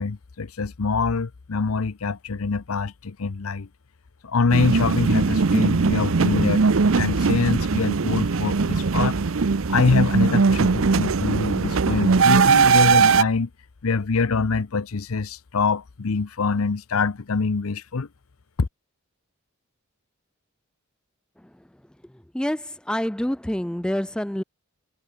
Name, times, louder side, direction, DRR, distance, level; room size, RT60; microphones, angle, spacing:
voice 1, 0.0-3.7 4.2-6.6 7.0-9.2 9.7-13.5 13.8-18.1 18.6-18.7, left 4 dB, 80° left, 0.7 m, -24 dB
sound 1, 4.5-13.2, right 4 dB, 70° right, 0.7 m, -20 dB
voice 2, 22.3-24.4, left 1 dB, 5° left, 0.4 m, -27 dB
head